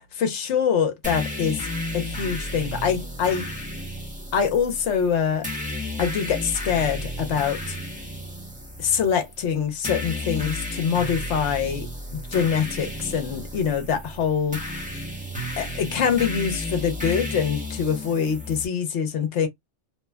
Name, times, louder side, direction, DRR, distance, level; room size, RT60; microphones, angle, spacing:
voice 1, 0.2-1.7 1.9-3.5 4.3-5.5 6.0-7.8 8.8-14.6 15.6-19.5, left 7 dB, 70° left, 1.0 m, -24 dB
sound 1, 1.0-18.6, left 1 dB, 10° right, 0.7 m, -33 dB
3.0 x 2.2 x 2.2 m
omnidirectional pair, 1.3 m